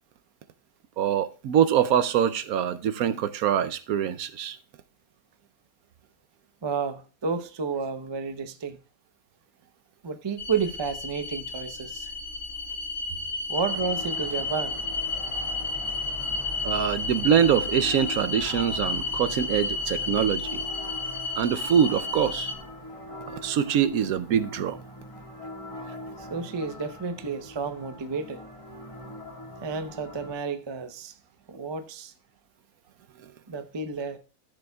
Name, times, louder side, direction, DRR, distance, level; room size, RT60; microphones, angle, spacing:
voice 1, 1.0-4.6 16.6-20.6 21.4-22.5 23.4-24.8, right 9 dB, 70° right, 1.0 m, -24 dB
voice 2, 6.6-8.8 10.0-12.1 13.5-14.8 26.2-28.4 29.6-31.2 31.5-32.1 33.5-34.2, right 5 dB, 30° right, 0.5 m, -31 dB
sound 1, 10.4-22.5, left 3 dB, 65° left, 2.7 m, -32 dB
sound 2, 13.5-30.3, left 1 dB, 20° left, 1.6 m, -42 dB
14.0 x 6.8 x 2.3 m
omnidirectional pair, 1.7 m